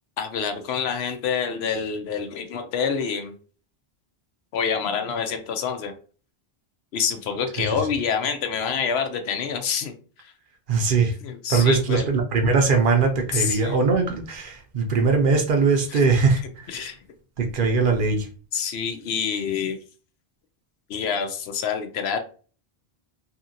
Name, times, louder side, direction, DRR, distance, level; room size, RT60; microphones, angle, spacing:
voice 1, 0.2-3.3 4.5-5.9 6.9-9.9 10.2-10.3 11.2-12.0 13.3-13.8 15.9-16.1 16.7-17.0 18.5-19.8 20.9-22.2, left 6 dB, 75° left, 6 dB, 0.8 m, -27 dB
voice 2, 10.7-11.2 11.5-16.9 17.4-18.3, right 4 dB, 60° right, 4 dB, 0.7 m, -21 dB
2.8 x 2.8 x 2.5 m, 0.39 s
omnidirectional pair, 1.1 m